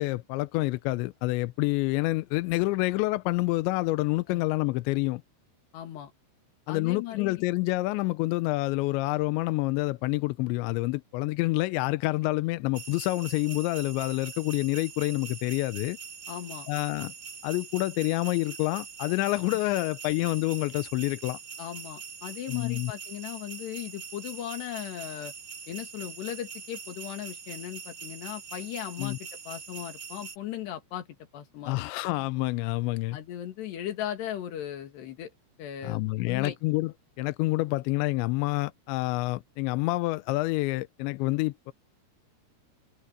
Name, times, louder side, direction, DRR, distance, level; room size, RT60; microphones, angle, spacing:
voice 1, 0.0-5.2 6.7-16.0 16.7-17.1 17.4-21.4 22.5-22.9 29.0-29.2 31.7-33.2 35.8-36.9 37.2-41.7, left 20 dB, 85° left, 2.6 m, -28 dB
voice 2, 5.7-6.1 6.7-7.4 16.3-16.7 21.6-25.3 25.7-31.1 31.3-31.8 33.1-35.3 35.6-36.6, left 11 dB, 60° left, 4.0 m, -37 dB
sound 1, 12.7-30.4, right 6 dB, 30° right, 3.4 m, -43 dB
omnidirectional pair, 5.9 m